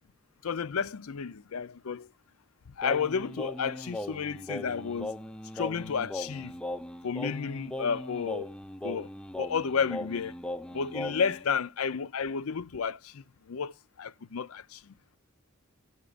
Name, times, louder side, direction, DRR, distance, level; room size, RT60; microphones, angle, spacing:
voice 1, 0.4-2.1 2.8-5.1 5.5-6.5 7.0-8.5 8.8-9.1 9.4-10.3 10.7-13.7 14.0-14.9, left 6 dB, 70° left, 0.5 m, -32 dB
Singing, 2.8-11.4, left 1 dB, 5° left, 0.5 m, -38 dB
17.5 x 8.0 x 2.4 m
head